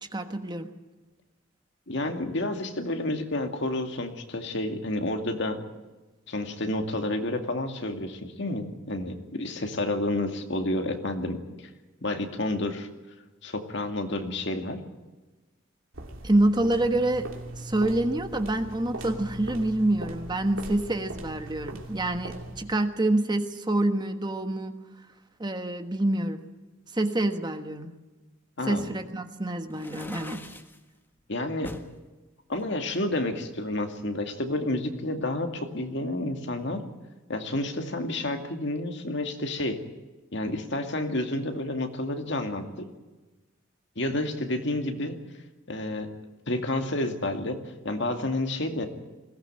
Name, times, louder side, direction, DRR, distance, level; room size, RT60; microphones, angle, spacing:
voice 1, 0.1-0.7 16.2-17.3 17.6-24.7 25.4-26.4 26.9-27.9 28.6-30.4, right 1 dB, 20° right, 7 dB, 1.3 m, -27 dB
voice 2, 1.9-5.6 6.3-11.4 12.0-12.9 13.4-14.8 28.6-28.9 31.3-31.7 32.5-36.8 37.3-39.8 40.3-42.9 44.0-45.2 45.7-46.1 46.5-48.9, left 1 dB, 60° left, 5 dB, 2.4 m, -30 dB
sound 1, 15.9-22.8, right 1 dB, 80° right, 2.8 m, -40 dB
sound 2, 29.7-30.8 31.6-31.9 32.5-33.6, left 1 dB, 10° left, 1.4 m, -43 dB
21.5 x 17.0 x 9.0 m, 1.2 s
head